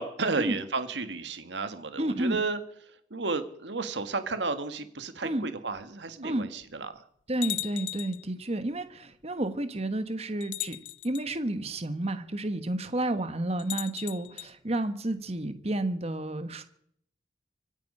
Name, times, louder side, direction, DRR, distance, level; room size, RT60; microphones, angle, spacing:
voice 1, 0.0-2.6 3.1-6.9, right 3 dB, 75° right, 9 dB, 1.6 m, -32 dB
voice 2, 2.0-2.4 5.2-5.5 6.2-6.5 7.3-10.8 11.0-16.6, right 1 dB, 35° right, 10 dB, 1.3 m, -31 dB
sound 1, 5.8-5.9 6.6-6.7 7.4-8.3 9.4-9.5 10.4-11.3 13.6-14.5, left 15 dB, 90° left, 0.7 m, -37 dB
25.5 x 9.0 x 5.5 m, 0.68 s
head